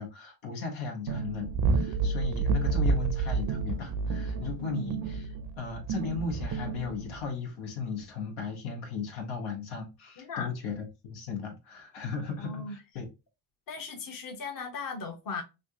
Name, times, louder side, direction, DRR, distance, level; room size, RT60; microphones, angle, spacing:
voice 1, 0.0-5.3 5.6-13.1, left 5 dB, 85° left, 1.1 m, -36 dB
sound 1, 1.1-7.3, right 4 dB, 50° right, 0.6 m, -30 dB
voice 2, 4.6-5.0 10.2-10.5 12.4-12.7 13.7-15.4, left 3 dB, 45° left, 0.9 m, -37 dB
3.2 x 2.5 x 2.7 m
cardioid pair, 85°, 46 cm